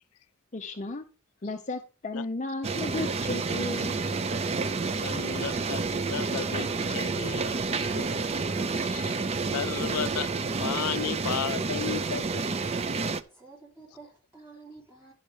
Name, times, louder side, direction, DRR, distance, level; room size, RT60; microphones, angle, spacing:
voice 1, 0.5-1.0 1.4-4.0, left 2 dB, 35° left, 0.6 m, -34 dB
sound 1, 2.6-13.2, right 4 dB, 30° right, 0.4 m, -29 dB
voice 2, 5.0-8.3 8.7-9.2 9.5-12.4, left 9 dB, 80° left, 0.4 m, -35 dB
voice 3, 12.9-15.1, right 3 dB, 10° right, 3.7 m, -51 dB
11.0 x 5.5 x 4.9 m
head